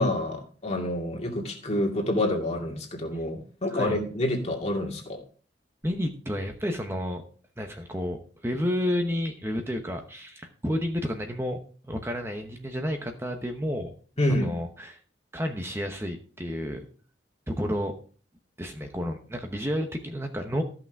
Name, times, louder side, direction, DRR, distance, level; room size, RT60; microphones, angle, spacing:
voice 1, 0.0-5.2 14.2-14.5, left 1 dB, 40° left, 1 dB, 2.3 m, -27 dB
voice 2, 5.8-7.2 7.6-8.2 8.4-11.6 11.8-13.9 14.3-15.0 15.3-16.9 17.5-17.9 18.6-20.6, equal, 15° right, 4 dB, 1.0 m, -30 dB
14.0 x 6.0 x 4.6 m, 0.41 s
head